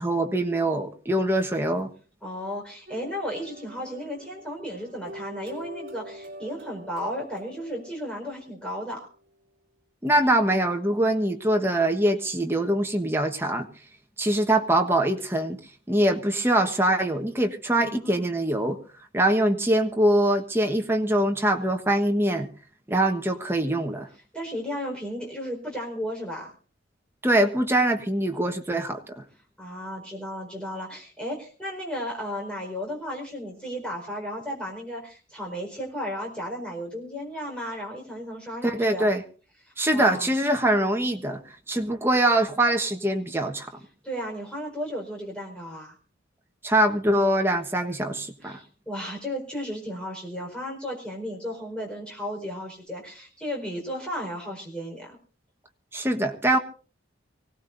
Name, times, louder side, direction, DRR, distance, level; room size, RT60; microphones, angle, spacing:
voice 1, 0.0-1.9 10.0-13.7 14.2-15.6 15.9-18.8 19.1-22.5 22.9-24.1 27.2-29.1 38.6-39.2 39.8-41.4 41.7-43.7 46.6-48.6 55.9-56.6, right 1 dB, 10° right, 3 dB, 1.3 m, -23 dB
voice 2, 2.2-9.0 17.7-18.2 24.3-26.5 29.6-39.1 39.6-40.3 44.0-45.9 48.4-55.2, equal, 5° left, -1 dB, 4.7 m, -34 dB
sound 1, 2.9-8.8, equal, 50° right, 3.4 m, -44 dB
24.5 x 17.5 x 2.6 m, 0.39 s
head